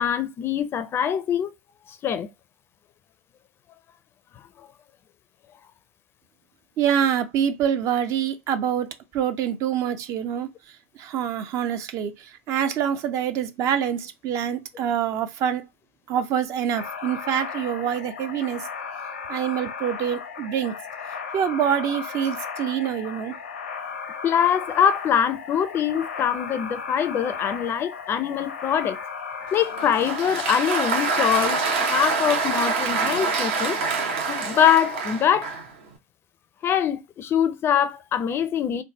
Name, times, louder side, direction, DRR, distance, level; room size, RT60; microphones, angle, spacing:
voice 1, 0.0-1.5 2.0-2.3 24.2-29.0 29.5-33.8 34.3-35.6 36.6-38.8, left 9 dB, 35° left, 0.5 m, -23 dB
voice 2, 6.8-10.5 11.0-15.6 16.1-18.7 19.3-20.8 21.3-23.4, right 9 dB, 45° right, 0.6 m, -25 dB
sound 1, 16.8-31.8, left 6 dB, 90° left, 0.7 m, -35 dB
Applause, 29.5-35.7, right 4 dB, 65° right, 0.9 m, -26 dB
3.3 x 2.0 x 2.8 m
hypercardioid pair, 95°, 7 cm